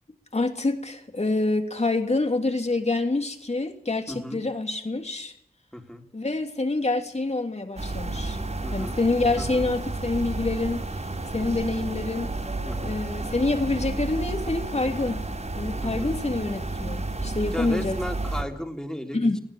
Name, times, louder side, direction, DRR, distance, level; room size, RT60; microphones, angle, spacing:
voice 1, 0.3-5.3 6.1-8.4 8.7-10.8 11.3-12.3 12.8-15.2 15.6-18.0 19.1-19.4, left 2 dB, 45° left, 5 dB, 3.1 m, -26 dB
voice 2, 4.1-4.4 5.7-6.0 8.6-9.0 9.4-9.7 12.6-12.9 15.8-16.2 17.5-19.3, equal, 5° left, 4 dB, 3.4 m, -35 dB
sound 1, 7.8-18.4, right 2 dB, 50° right, 5.0 m, -31 dB
20.5 x 16.0 x 8.7 m, 0.72 s
wide cardioid pair, 60°, 15 cm